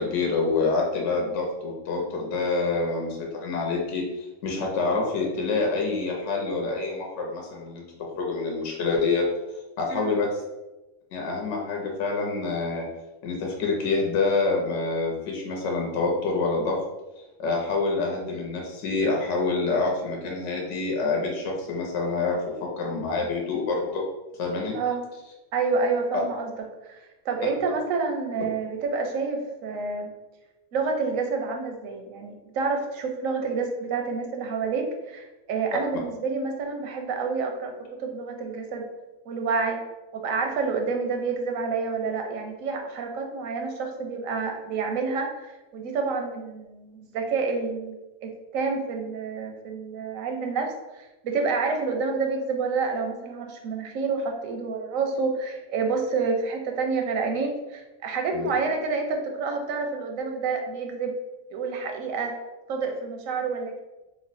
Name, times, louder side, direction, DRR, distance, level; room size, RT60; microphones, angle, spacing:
voice 1, 0.0-7.8 8.2-9.3 9.8-10.4 11.1-12.9 13.2-16.8 17.4-24.0 24.4-24.7 58.3-58.5, left 3 dB, 65° left, -1 dB, 0.9 m, -27 dB
voice 2, 25.5-26.5 26.8-27.0 27.2-30.1 30.7-37.7 38.0-38.8 39.3-39.8 40.1-61.2 61.5-62.3 62.7-63.8, right 4 dB, 85° right, 3 dB, 1.0 m, -28 dB
3.1 x 2.1 x 4.0 m, 1.0 s
omnidirectional pair, 1.4 m